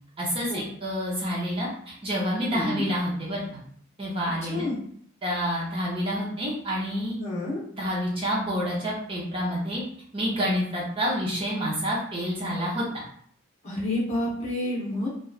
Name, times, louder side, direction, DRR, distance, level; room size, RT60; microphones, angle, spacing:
voice 1, 0.2-3.6 4.0-4.7 5.2-7.1 7.7-9.8 10.1-12.8, equal, 25° right, -6 dB, 0.6 m, -28 dB
voice 2, 2.5-2.8 4.4-4.8 7.2-7.6 13.6-15.1, left 1 dB, 30° left, -6 dB, 0.9 m, -29 dB
3.0 x 2.3 x 2.3 m, 0.62 s
head